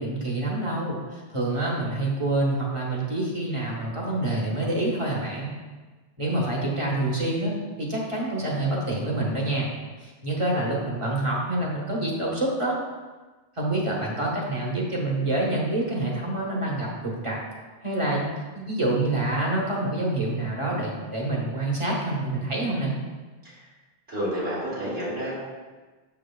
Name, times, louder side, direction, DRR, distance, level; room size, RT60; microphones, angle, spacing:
voice 1, 0.0-5.5 6.2-9.7 10.0-12.8 13.6-17.4 17.8-18.3 18.5-22.9, right 2 dB, 30° right, -4 dB, 1.2 m, -27 dB
voice 2, 24.1-25.4, equal, 75° right, -10 dB, 2.2 m, -29 dB
6.9 x 6.1 x 2.3 m, 1.3 s
omnidirectional pair, 1.0 m